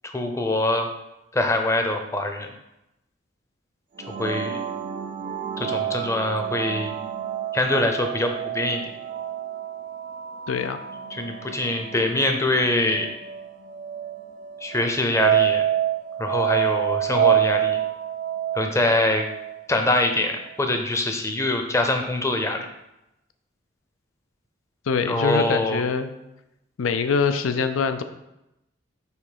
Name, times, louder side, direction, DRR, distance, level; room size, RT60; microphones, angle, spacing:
voice 1, 0.0-1.0 1.3-2.5 4.1-4.6 5.6-6.9 7.5-8.8 11.1-13.1 14.6-15.7 16.2-17.8 18.5-19.3 19.7-22.7 25.1-25.8, left 2 dB, 15° left, 5 dB, 0.6 m, -24 dB
sound 1, 4.0-19.6, right 10 dB, 40° right, 0.3 m, -27 dB
voice 2, 10.5-10.8 24.9-26.1 26.8-28.0, left 5 dB, 90° left, 10 dB, 0.5 m, -24 dB
5.6 x 3.9 x 5.0 m, 0.89 s
head